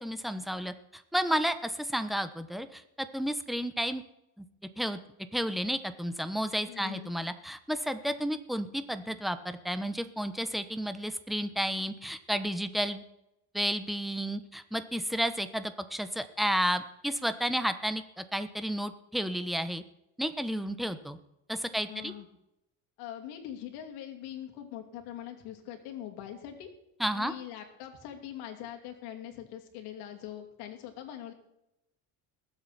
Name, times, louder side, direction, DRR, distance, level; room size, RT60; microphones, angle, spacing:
voice 1, 0.0-4.0 4.4-4.5 4.8-5.0 5.3-13.0 13.5-19.8 20.2-21.2 21.5-22.1 27.0-27.3, equal, ahead, 10 dB, 1.0 m, -32 dB
voice 2, 6.7-7.1 21.7-22.3 23.0-26.7 27.1-31.3, left 11 dB, 85° left, 3 dB, 2.8 m, -42 dB
20.5 x 8.0 x 4.2 m, 0.85 s
cardioid pair, 115°, 38 cm